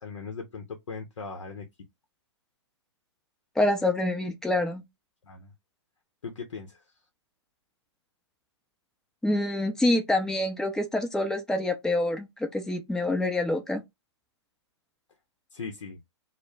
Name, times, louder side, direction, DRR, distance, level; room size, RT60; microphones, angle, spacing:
voice 1, 0.0-1.7 5.3-5.5 6.2-6.8 15.5-16.0, left 5 dB, 80° left, 0.6 m, -39 dB
voice 2, 3.6-4.8 9.2-13.8, left 1 dB, 5° left, 0.5 m, -26 dB
2.2 x 2.0 x 3.2 m
hypercardioid pair, 120°, 15 cm